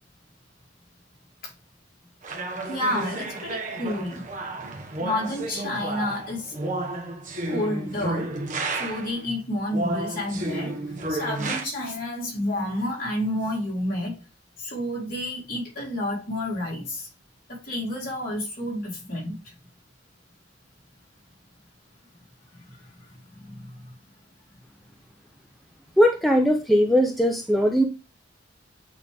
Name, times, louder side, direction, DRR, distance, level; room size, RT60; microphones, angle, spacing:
sound 1, 2.2-9.2 9.7-11.6, right 2 dB, 45° right, 1.2 m, -32 dB
voice 1, 2.7-4.3 5.0-6.5 7.5-8.3 8.7-14.2 14.6-17.1 17.5-19.5 22.5-23.9, left 1 dB, 50° left, 3.6 m, -30 dB
voice 2, 26.0-27.8, equal, ahead, 0.6 m, -19 dB
8.3 x 3.4 x 3.5 m
head